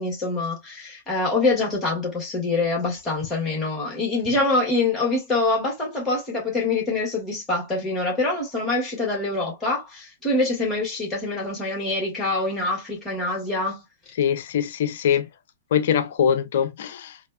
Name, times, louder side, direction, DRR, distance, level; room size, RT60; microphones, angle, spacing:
voice 1, 0.0-13.8, left 2 dB, 15° left, 1.9 m, -25 dB
voice 2, 14.2-15.3 15.7-17.2, left 8 dB, 50° left, 0.5 m, -23 dB
4.1 x 2.4 x 2.3 m
figure-of-eight pair, 105°, 0 cm